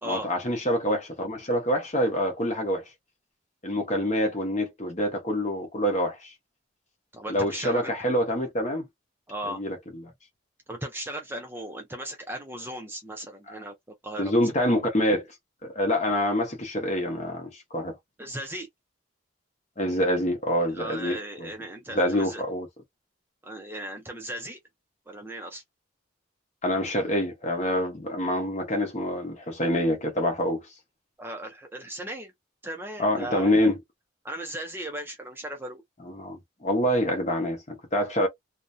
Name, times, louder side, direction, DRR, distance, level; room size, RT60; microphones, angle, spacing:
voice 1, 0.0-2.8 3.6-6.3 7.3-8.8 9.4-10.1 14.2-15.2 15.6-17.9 19.8-21.5 21.9-22.7 26.6-30.6 33.0-33.8 36.0-38.3, equal, 35° left, 0.8 m, -26 dB
voice 2, 7.1-8.0 9.3-9.6 10.7-13.7 14.0-14.3 18.2-18.7 20.7-22.4 23.4-24.6 25.1-25.6 31.2-32.3 32.6-33.7 34.2-35.8, right 1 dB, 10° right, 0.4 m, -37 dB
2.5 x 2.1 x 2.5 m
head